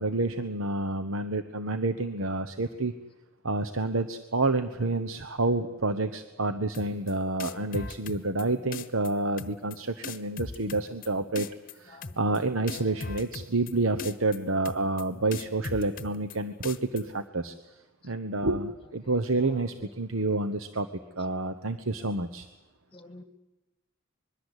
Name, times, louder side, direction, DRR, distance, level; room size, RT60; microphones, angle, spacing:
voice 1, 0.0-2.9 3.4-11.5 11.8-17.5 18.0-20.9 21.2-22.5, right 2 dB, 80° right, 10 dB, 1.1 m, -29 dB
sound 1, 6.7-7.1 7.4-8.4 8.7-9.1 9.4-9.8 10.0-11.1 11.3-11.7 12.0-12.4 12.7-13.7 14.0-14.4 14.6-15.0 15.3-16.3 16.6-17.0, left 4 dB, 40° left, 1.2 m, -38 dB
voice 2, 8.3-8.7 11.9-12.4 18.0-18.1 19.0-19.9 22.9-23.2, left 2 dB, 25° left, 10 dB, 2.0 m, -51 dB
25.0 x 22.0 x 8.2 m, 1.1 s
head